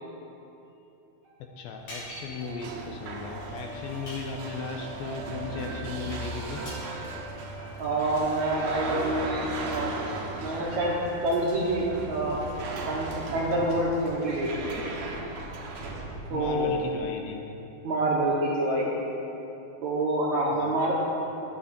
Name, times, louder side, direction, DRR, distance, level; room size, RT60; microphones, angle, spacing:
sound 1, 1.2-15.3, right 2 dB, 40° right, 1.5 m, -47 dB
voice 1, 1.6-7.2 16.3-17.7 20.5-20.8, left 4 dB, 80° left, 3 dB, 2.3 m, -37 dB
sound 2, 1.8-16.9, right 2 dB, 85° right, 1.5 m, -37 dB
sound 3, 1.9-2.4 4.1-4.6 6.7-6.9, left 1 dB, 60° left, 4.7 m, -42 dB
voice 2, 7.8-10.0 10.4-11.0 11.2-12.4 12.9-14.8 16.3-16.7 17.8-19.1 19.8-20.9, right 1 dB, 65° right, -4 dB, 1.9 m, -27 dB
13.0 x 9.4 x 4.3 m, 2.9 s
omnidirectional pair, 4.5 m